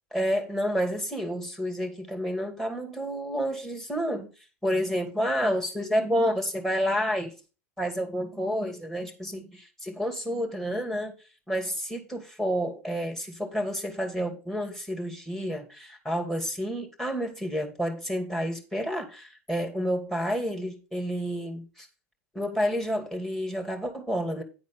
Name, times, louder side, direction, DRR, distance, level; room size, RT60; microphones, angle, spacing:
voice 1, 0.1-4.3 4.6-7.3 7.8-11.1 11.5-21.9 22.3-24.4, equal, 5° left, 2.6 m, -29 dB
10.5 x 4.1 x 6.4 m
figure-of-eight pair, 85°, 8 cm